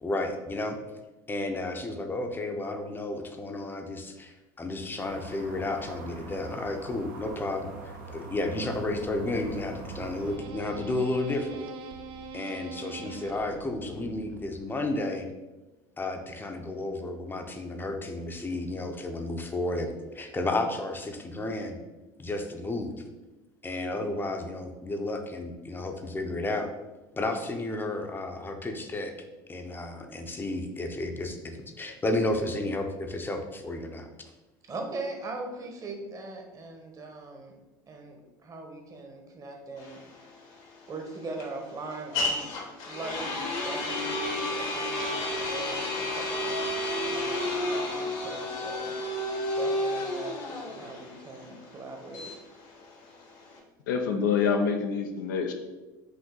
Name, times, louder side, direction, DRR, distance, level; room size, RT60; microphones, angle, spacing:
voice 1, 0.0-0.8 1.3-11.7 12.3-15.3 16.0-21.8 22.2-23.0 23.6-26.7 27.2-29.1 29.5-34.1, left 2 dB, 20° left, 5 dB, 0.7 m, -32 dB
sound 1, 5.0-10.4, right 3 dB, 80° right, 1.0 m, -43 dB
sound 2, 8.7-15.0, right 5 dB, 60° right, 0.5 m, -43 dB
voice 2, 34.6-37.6 37.9-40.0 40.9-42.5 42.9-48.9 49.5-52.3, right 3 dB, 35° right, 2 dB, 1.0 m, -40 dB
sound 3, 39.8-53.6, left 1 dB, 65° left, 1.2 m, -32 dB
voice 3, 53.9-55.5, left 6 dB, 85° left, 5 dB, 0.6 m, -26 dB
5.2 x 2.6 x 3.8 m, 1.1 s
hypercardioid pair, 85°, 10 cm